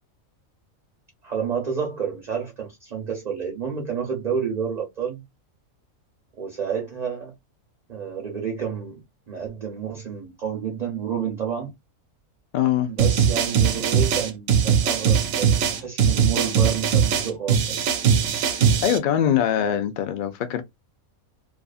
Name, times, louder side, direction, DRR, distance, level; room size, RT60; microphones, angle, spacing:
voice 1, 1.2-5.2 6.4-7.3 7.9-11.7 12.9-17.9, right 7 dB, 40° right, 0.6 m, -30 dB
voice 2, 12.5-12.9 18.4-20.6, left 10 dB, 75° left, 0.4 m, -23 dB
sound 1, 13.0-19.0, right 7 dB, 90° right, 1.1 m, -20 dB
2.5 x 2.5 x 2.3 m
omnidirectional pair, 1.4 m